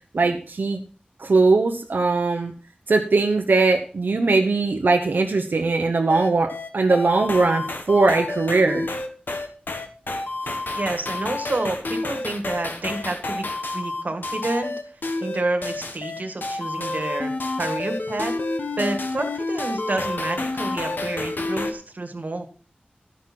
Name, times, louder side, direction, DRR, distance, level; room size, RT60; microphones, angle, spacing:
voice 1, 0.1-0.8 1.2-2.5 2.9-8.9 10.4-10.5, right 3 dB, 85° right, 3 dB, 0.9 m, -20 dB
sound 1, 6.1-21.7, left 2 dB, 80° left, 1.3 m, -29 dB
voice 2, 10.7-13.4 13.7-14.7 15.2-17.3 17.6-18.3 18.8-22.4, right 2 dB, 60° right, 6 dB, 1.8 m, -29 dB
12.5 x 6.1 x 6.0 m, 0.40 s
wide cardioid pair, 75°, 3 cm